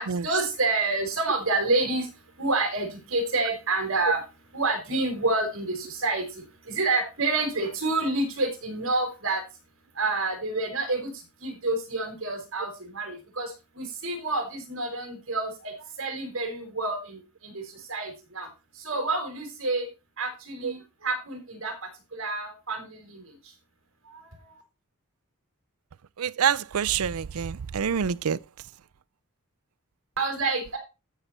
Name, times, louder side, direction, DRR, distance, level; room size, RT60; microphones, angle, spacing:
voice 1, 0.0-9.4 9.9-18.5 18.7-19.9 20.2-23.5 24.0-24.6 30.2-30.8, right 2 dB, 60° right, 4.9 m, -29 dB
voice 2, 26.2-28.4, right 7 dB, 80° right, 0.5 m, -26 dB
13.0 x 6.8 x 4.3 m
head